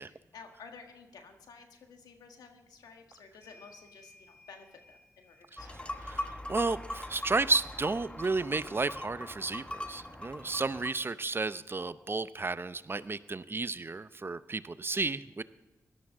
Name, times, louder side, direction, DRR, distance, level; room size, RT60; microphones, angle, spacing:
voice 1, 0.0-6.0, left 5 dB, 85° left, 5 dB, 1.6 m, -53 dB
sound 1, 3.4-11.5 12.8-12.9 13.2-14.2, left 1 dB, 35° left, 3.6 m, -64 dB
sound 2, 5.6-10.9, left 1 dB, 15° left, 1.1 m, -41 dB
voice 2, 6.5-15.4, right 3 dB, 35° right, 15 dB, 0.6 m, -32 dB
17.0 x 12.0 x 3.7 m, 1.1 s
cardioid pair, 45°, 6 cm